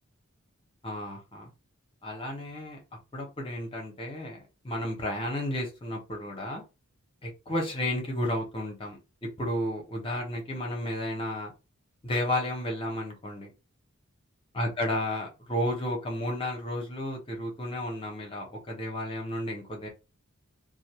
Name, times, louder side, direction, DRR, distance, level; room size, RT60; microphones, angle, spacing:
voice 1, 0.8-1.5 2.0-2.8 3.1-6.6 7.2-11.5 12.0-13.5 14.5-19.9, left 1 dB, 25° left, 0 dB, 0.8 m, -32 dB
2.4 x 2.1 x 2.9 m, 0.28 s
head